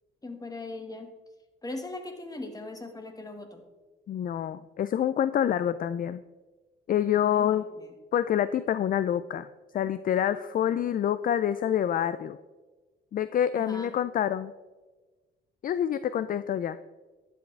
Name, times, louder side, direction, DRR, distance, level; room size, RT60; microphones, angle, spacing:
voice 1, 0.2-1.1 1.6-3.6 7.2-7.9 13.5-14.0, left 2 dB, 20° left, 6 dB, 1.6 m, -40 dB
voice 2, 4.1-6.2 6.9-7.6 8.1-9.5 9.7-12.4 13.1-14.5 15.6-16.8, left 10 dB, 45° left, 14 dB, 0.4 m, -27 dB
11.0 x 9.5 x 3.3 m, 1.2 s
cardioid pair, 90°, 20 cm